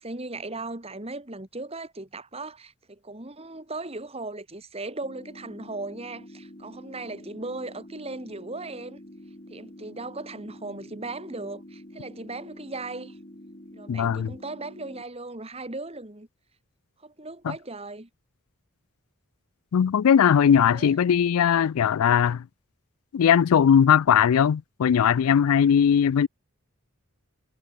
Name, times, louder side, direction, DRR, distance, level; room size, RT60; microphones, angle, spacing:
voice 1, 0.0-9.0 9.5-13.2 13.7-16.3 17.0-18.1 20.7-21.0, right 2 dB, 25° right, 2.1 m, -37 dB
sound 1, 5.0-15.0, left 1 dB, 30° left, 3.2 m, -47 dB
voice 2, 13.9-14.3 17.4-17.5 19.7-22.4 23.1-26.3, left 8 dB, 75° left, 0.4 m, -19 dB
head